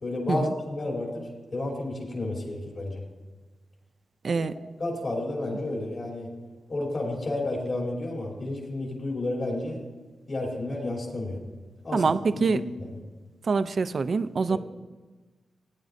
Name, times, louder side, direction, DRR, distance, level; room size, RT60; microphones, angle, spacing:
voice 1, 0.0-3.0 4.3-4.4 4.8-6.3 6.7-9.8 10.3-11.4 11.8-12.1 12.4-12.9 14.5-14.6, left 2 dB, 65° left, -2 dB, 3.1 m, -31 dB
voice 2, 4.2-4.5 11.9-12.6 13.5-14.6, right 4 dB, 60° right, 13 dB, 0.4 m, -25 dB
16.0 x 9.4 x 2.6 m, 1.3 s
cardioid pair, 50°, 0 cm